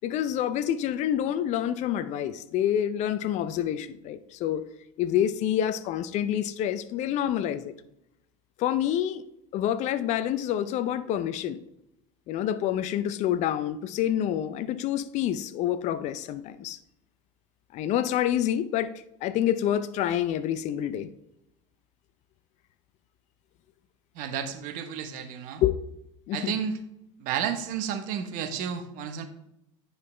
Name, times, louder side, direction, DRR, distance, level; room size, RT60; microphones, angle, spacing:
voice 1, 0.0-4.6 5.0-7.7 8.6-9.2 9.5-11.6 12.3-16.8 17.7-18.9 19.2-21.1 25.6-25.8 26.3-26.5, left 10 dB, 45° left, 0.5 m, -27 dB
voice 2, 24.1-25.6 26.3-26.8 27.2-29.2, right 8 dB, 55° right, 1.1 m, -32 dB
9.6 x 5.5 x 3.3 m
hypercardioid pair, 95°, 16 cm